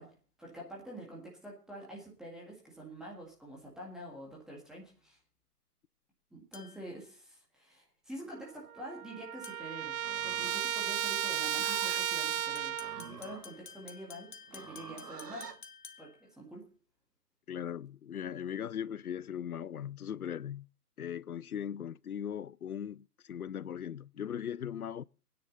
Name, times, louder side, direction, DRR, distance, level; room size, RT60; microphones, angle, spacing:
voice 1, 0.0-5.2 6.3-15.5 16.0-16.7, right 1 dB, ahead, 1.8 m, -47 dB
sound 1, 6.5-7.0 9.4-9.8 12.3-16.3, left 6 dB, 30° left, 1.0 m, -52 dB
Trumpet, 8.4-8.5 8.7-13.1, right 10 dB, 65° right, 0.6 m, -34 dB
Livestock farm animals working animals, 9.9-15.6, right 6 dB, 85° right, 1.1 m, -50 dB
voice 2, 17.5-20.7 21.0-25.0, left 9 dB, 70° left, 0.6 m, -39 dB
21.0 x 9.6 x 4.0 m
figure-of-eight pair, 150°, 47 cm